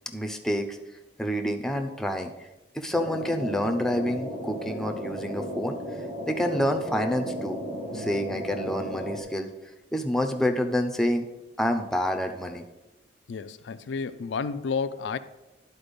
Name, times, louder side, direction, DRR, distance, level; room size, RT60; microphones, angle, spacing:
voice 1, 0.1-0.8 1.2-2.5 2.7-5.8 6.3-7.6 7.9-9.5 9.9-11.3 11.6-12.6, equal, ahead, 4 dB, 0.5 m, -28 dB
sound 1, 2.9-9.2, equal, 35° right, 1.5 m, -34 dB
voice 2, 13.3-15.2, left 5 dB, 75° left, 11 dB, 0.4 m, -31 dB
10.5 x 4.3 x 5.2 m, 1.0 s
head